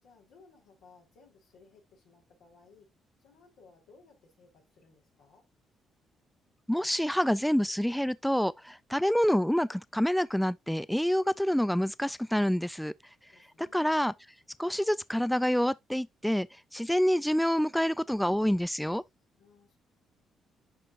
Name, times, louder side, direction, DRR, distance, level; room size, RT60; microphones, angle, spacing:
voice 1, 0.0-2.9 3.2-5.5 13.3-14.1 19.4-19.8, left 4 dB, 90° left, 3.7 m, -60 dB
voice 2, 6.7-12.9 13.6-14.1 14.6-16.5 16.7-19.0, equal, ahead, 0.3 m, -27 dB
10.5 x 4.4 x 2.5 m
cardioid pair, 90°, 0 cm